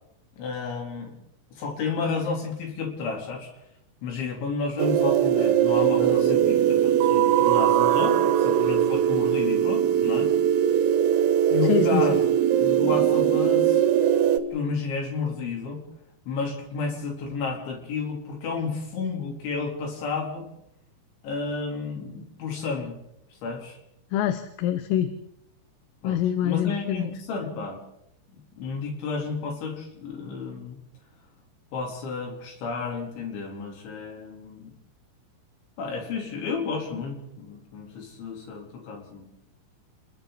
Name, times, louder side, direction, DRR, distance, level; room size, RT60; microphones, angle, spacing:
voice 1, 0.4-1.1 1.6-3.5 4.0-10.3 11.5-12.2 12.6-13.8 14.5-15.8 16.3-20.5 21.2-23.0 23.4-23.8 26.0-27.8 28.6-30.8 31.7-34.7 35.8-39.3, left 4 dB, 65° left, 1 dB, 6.0 m, -31 dB
sound 1, 4.8-14.4, right 10 dB, 80° right, 3.8 m, -21 dB
voice 2, 11.6-12.2 24.1-25.2 26.0-27.1, left 11 dB, 85° left, 10 dB, 3.6 m, -25 dB
30.0 x 21.5 x 4.2 m, 0.81 s
omnidirectional pair, 5.9 m